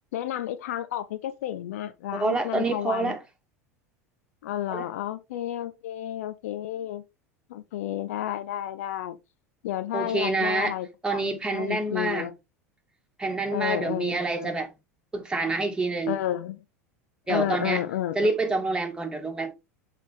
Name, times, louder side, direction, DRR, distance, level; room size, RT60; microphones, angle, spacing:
voice 1, 0.1-3.2 4.4-7.0 7.5-9.2 9.6-11.2 11.5-12.3 13.5-14.5 16.1-16.6 17.3-18.3, left 12 dB, 70° left, 0.7 m, -31 dB
voice 2, 2.1-3.2 4.7-4.9 9.9-10.7 11.0-12.3 13.2-14.7 15.1-16.2 17.3-17.8 18.1-19.5, right 3 dB, 10° right, 2.1 m, -27 dB
7.3 x 4.6 x 3.6 m
hypercardioid pair, 80°, 8 cm